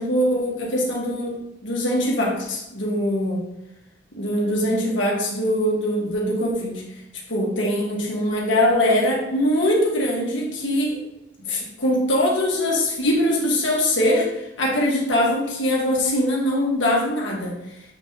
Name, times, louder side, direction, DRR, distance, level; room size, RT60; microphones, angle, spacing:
voice 1, 0.0-1.4 1.6-3.4 4.1-6.8 7.3-11.0 11.4-17.5, left 1 dB, 65° left, -3 dB, 2.1 m, -22 dB
7.9 x 4.2 x 4.1 m, 0.89 s
head